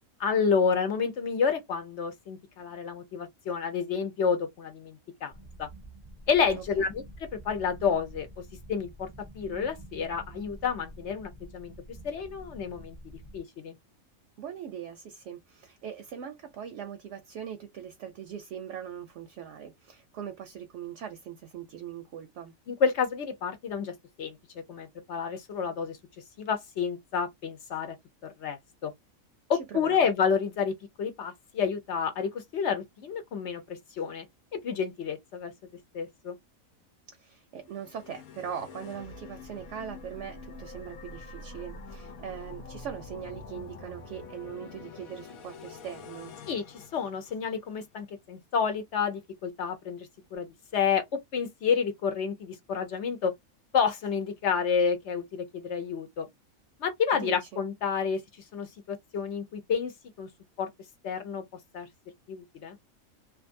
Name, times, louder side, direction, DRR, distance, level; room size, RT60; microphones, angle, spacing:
voice 1, 0.2-5.3 5.6-5.7 6.3-7.0 7.3-8.3 8.7-9.1 9.3-11.7 12.0-13.0 13.3-13.8 22.7-26.0 26.4-28.0 28.2-28.9 29.5-34.3 34.5-35.5 35.9-36.4 46.5-53.3 53.7-56.3 56.8-58.2 58.5-59.9 60.2-60.3 60.6-60.7 61.0-61.4 61.7-61.9 62.3-62.8, left 6 dB, 60° left, 1.0 m, -29 dB
sound 1, 5.3-13.4, right 1 dB, 30° right, 0.4 m, -48 dB
voice 2, 6.5-6.9 14.4-22.5 29.7-30.1 37.1-46.3 57.2-57.6, right 8 dB, 70° right, 0.8 m, -41 dB
sound 2, 37.6-47.8, left 3 dB, 85° left, 1.1 m, -46 dB
2.5 x 2.4 x 2.5 m
omnidirectional pair, 1.4 m